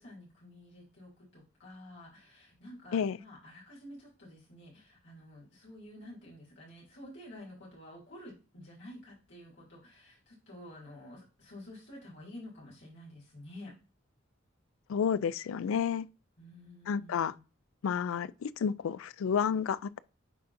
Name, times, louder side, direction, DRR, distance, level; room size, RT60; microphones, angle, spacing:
voice 1, 0.0-13.8 16.4-17.4, left 1 dB, 60° left, 2.8 m, -50 dB
voice 2, 14.9-16.1 16.9-17.3 17.8-20.0, left 7 dB, 90° left, 0.3 m, -30 dB
10.0 x 3.8 x 2.6 m
head